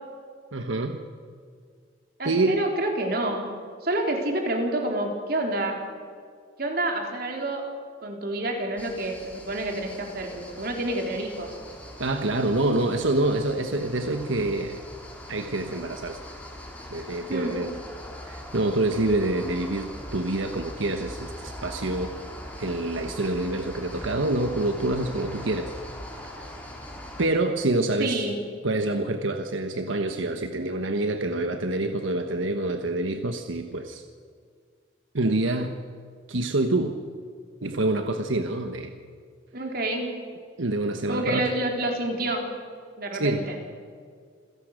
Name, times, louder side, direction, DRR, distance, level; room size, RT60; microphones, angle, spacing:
voice 1, 0.5-1.0 2.2-2.6 12.0-14.8 15.3-16.2 16.9-17.8 18.2-22.2 22.6-25.7 26.4-26.5 27.2-28.2 28.6-34.0 35.1-35.7 36.3-36.9 37.6-38.9 40.6-41.5 43.1-43.4, right 2 dB, 85° right, 6 dB, 1.3 m, -26 dB
voice 2, 2.2-3.5 3.8-5.8 6.6-7.7 8.0-11.6 17.3-17.6 28.0-28.4 39.5-40.1 41.1-42.5 43.0-43.6, right 1 dB, 50° right, 2 dB, 3.8 m, -28 dB
sound 1, 8.8-27.3, left 1 dB, 10° left, 3.6 m, -41 dB
27.5 x 16.5 x 6.6 m, 2.2 s
head